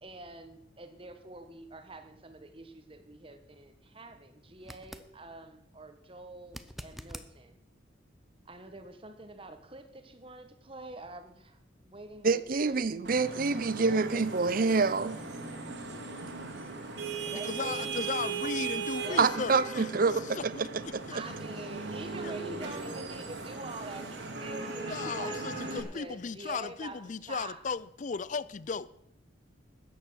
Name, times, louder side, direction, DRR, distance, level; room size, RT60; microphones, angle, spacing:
voice 1, 0.0-7.6 8.4-12.9 13.5-15.0 17.2-18.0 19.0-19.5 21.1-27.6, right 2 dB, 30° right, 1.3 m, -46 dB
sound 1, 4.6-5.1 6.5-7.3 10.3-10.4, equal, ahead, 0.6 m, -45 dB
voice 2, 12.2-15.2 19.2-20.7, right 4 dB, 45° right, 0.6 m, -27 dB
Vehicle horn car horn honking / Traffic noise roadway noise, 13.0-25.8, right 4 dB, 70° right, 2.6 m, -38 dB
voice 3, 17.1-20.2 20.9-21.2 22.2-22.3 24.9-28.9, left 5 dB, 40° left, 0.4 m, -36 dB
13.5 x 9.5 x 6.3 m
head